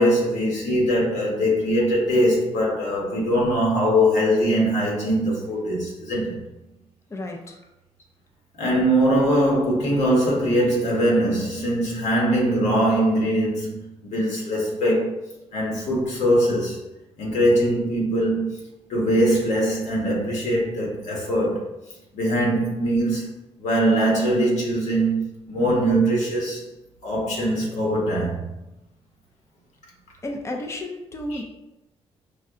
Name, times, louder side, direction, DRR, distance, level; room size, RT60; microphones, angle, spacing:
voice 1, 0.0-6.4 8.6-15.2 15.5-16.8 17.2-18.6 18.9-21.6 22.1-23.3 23.6-26.7 27.0-28.5 31.3-31.4, equal, 90° left, 1.4 m, -22 dB
voice 2, 7.1-7.6 30.2-31.4, left 1 dB, 25° left, 0.5 m, -32 dB
5.3 x 2.2 x 3.7 m
cardioid pair, 115°, 12 cm